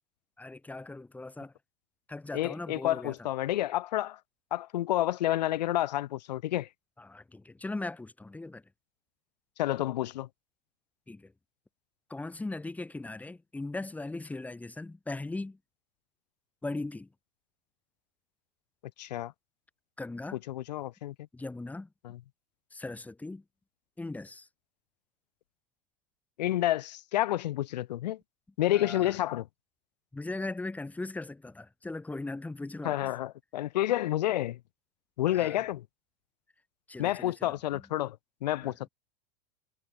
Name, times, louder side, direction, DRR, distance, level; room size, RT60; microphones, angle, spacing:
voice 1, 0.4-1.5 2.1-3.2 7.0-8.6 11.1-11.3 12.1-15.6 16.6-17.1 20.0-20.4 21.3-21.9 22.7-23.4 24.0-24.5 28.7-29.2 30.1-33.1 35.3-35.6 36.9-37.8 38.6-38.7, left 2 dB, 5° left, 6.0 m, -39 dB
voice 2, 2.3-4.2 4.5-6.7 9.6-10.3 19.0-19.3 20.5-21.1 26.4-28.2 28.6-29.4 32.8-34.6 35.2-35.8 37.0-38.2 38.4-38.9, left 14 dB, 90° left, 1.6 m, -29 dB
supercardioid pair, 140°, 21 cm